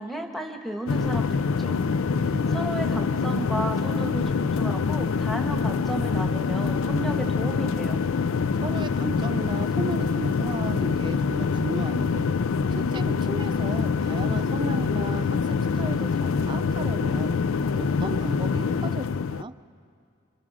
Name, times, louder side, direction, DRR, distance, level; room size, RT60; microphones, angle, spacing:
voice 1, 0.0-1.8 2.2-8.0, right 1 dB, ahead, 2 dB, 1.4 m, -33 dB
sound 1, 0.9-19.4, left 5 dB, 85° left, 0.5 m, -25 dB
voice 2, 1.6-2.0 2.3-2.7 8.6-12.3 12.8-17.3 17.7-19.5, right 2 dB, 25° right, 11 dB, 0.5 m, -35 dB
27.0 x 26.0 x 4.9 m, 2.3 s
head